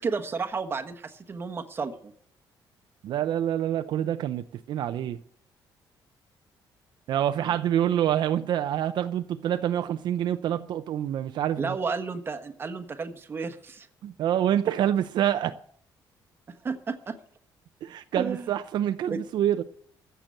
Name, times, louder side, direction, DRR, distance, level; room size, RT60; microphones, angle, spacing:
voice 1, 0.0-2.1 7.5-7.6 11.6-13.9 16.6-17.2 18.1-18.5 19.1-19.2, right 5 dB, 30° right, 1.2 m, -32 dB
voice 2, 3.0-5.2 7.1-11.8 14.0-15.6 17.8-19.6, right 10 dB, 70° right, 0.6 m, -26 dB
15.0 x 6.8 x 7.8 m
cardioid pair, 150°, 8 cm